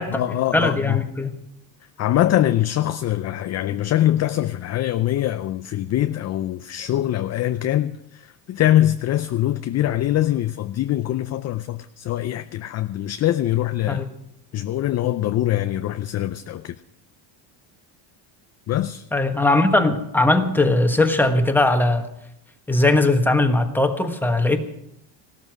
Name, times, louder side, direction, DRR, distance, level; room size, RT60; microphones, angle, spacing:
voice 1, 0.0-1.0 2.0-14.0 14.5-16.7 18.7-19.0, left 13 dB, 35° left, 0.5 m, -23 dB
voice 2, 0.5-1.3 13.9-14.1 19.1-22.1 22.7-24.6, left 2 dB, 5° left, 1.4 m, -19 dB
16.5 x 13.0 x 6.1 m
cardioid pair, 130°, 47 cm